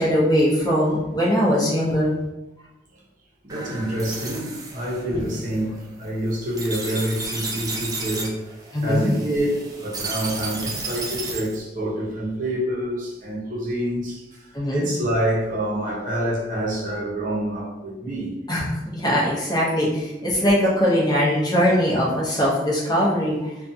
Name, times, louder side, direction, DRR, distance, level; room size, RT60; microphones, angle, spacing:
voice 1, 0.0-2.1 8.7-9.1 14.5-14.9 18.5-23.5, equal, 25° left, -6 dB, 0.7 m, -21 dB
voice 2, 3.4-8.4 8.8-18.3, right 1 dB, 45° right, -5 dB, 0.7 m, -27 dB
sound 1, 3.5-11.6, right 3 dB, 20° right, 0.4 m, -33 dB
2.5 x 2.3 x 2.6 m, 0.97 s
head